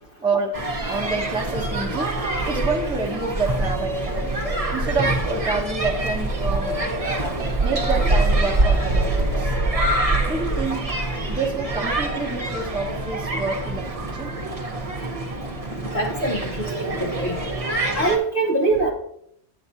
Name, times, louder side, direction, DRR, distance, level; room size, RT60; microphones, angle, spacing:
voice 1, 0.2-0.6 0.9-2.1 2.5-4.3 4.7-6.9 7.6-9.5 10.3-10.8 11.3-14.4, right 3 dB, 5° right, 2 dB, 0.7 m, -28 dB
sound 1, 0.5-18.2, right 2 dB, 35° right, 1.0 m, -25 dB
voice 2, 15.9-17.4 17.9-18.9, right 2 dB, 50° left, -1 dB, 1.3 m, -23 dB
8.7 x 8.4 x 2.7 m, 0.71 s
omnidirectional pair, 1.2 m